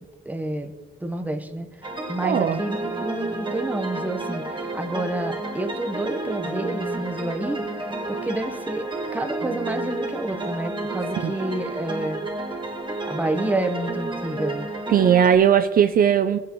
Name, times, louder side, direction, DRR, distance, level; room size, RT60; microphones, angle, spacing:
voice 1, 0.2-0.7 1.0-7.6 8.1-8.9 9.1-12.2 13.0-14.7, right 1 dB, 10° right, 5 dB, 1.0 m, -29 dB
sound 1, 1.8-15.4, right 2 dB, 25° right, 1.8 m, -31 dB
voice 2, 2.2-2.6 11.2-11.3 14.9-16.4, right 8 dB, 45° right, 8 dB, 0.4 m, -18 dB
18.5 x 8.5 x 3.1 m, 1.5 s
cardioid pair, 90°, 20 cm